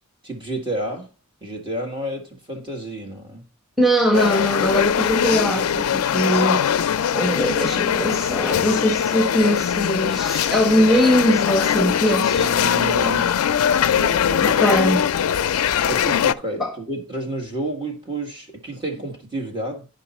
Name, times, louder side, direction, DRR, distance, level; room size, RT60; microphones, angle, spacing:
voice 1, 0.2-1.1 1.4-3.4 12.3-14.6 15.9-19.9, right 1 dB, 25° right, 1.5 m, -30 dB
voice 2, 3.8-6.6 7.1-12.5 14.4-15.1 16.6-16.7, equal, ahead, 1.4 m, -21 dB
sound 1, 4.1-16.3, left 8 dB, 80° left, 0.4 m, -21 dB
10.5 x 5.3 x 4.2 m
head